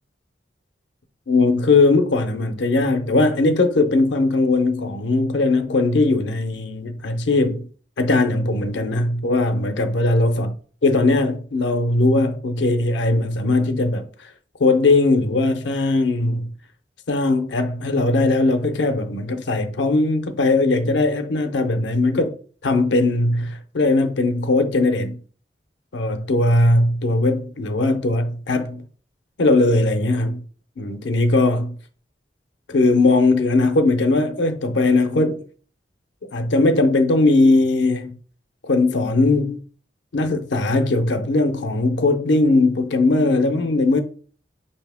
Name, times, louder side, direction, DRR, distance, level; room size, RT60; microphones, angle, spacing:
voice 1, 1.3-7.7 8.0-10.5 10.8-14.3 14.6-16.5 17.1-22.4 22.6-25.2 25.9-28.8 29.4-30.4 30.8-31.8 32.7-35.4 36.3-38.2 38.6-39.6 40.1-44.0, left 2 dB, 80° left, 0.6 m, -19 dB
5.5 x 2.8 x 3.4 m
head